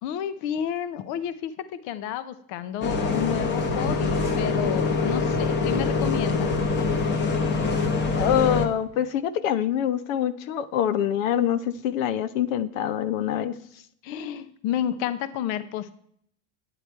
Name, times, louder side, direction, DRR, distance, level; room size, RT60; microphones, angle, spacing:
voice 1, 0.0-6.5 14.0-15.9, left 10 dB, 50° left, 14 dB, 0.6 m, -31 dB
Bus, 2.8-8.7, left 4 dB, 25° left, 1.0 m, -24 dB
voice 2, 8.2-13.5, left 10 dB, 85° left, 14 dB, 0.9 m, -25 dB
9.8 x 8.4 x 4.4 m, 0.66 s
supercardioid pair, 155°, 39 cm